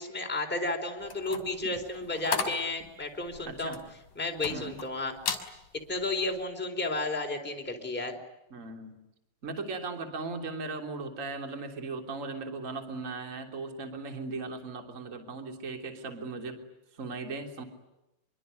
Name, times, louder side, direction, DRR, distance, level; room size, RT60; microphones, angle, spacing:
voice 1, 0.0-3.8 4.2-5.2 5.9-8.2, left 2 dB, ahead, 3 dB, 2.9 m, -32 dB
sound 1, 1.0-4.9 5.2-5.5 6.0-6.2, left 6 dB, 45° left, 4.2 m, -35 dB
voice 2, 3.4-3.8 4.5-4.8 8.5-9.0 9.4-16.6 16.9-17.6, right 3 dB, 20° right, 5 dB, 2.5 m, -38 dB
26.0 x 24.0 x 9.5 m, 0.91 s
omnidirectional pair, 5.9 m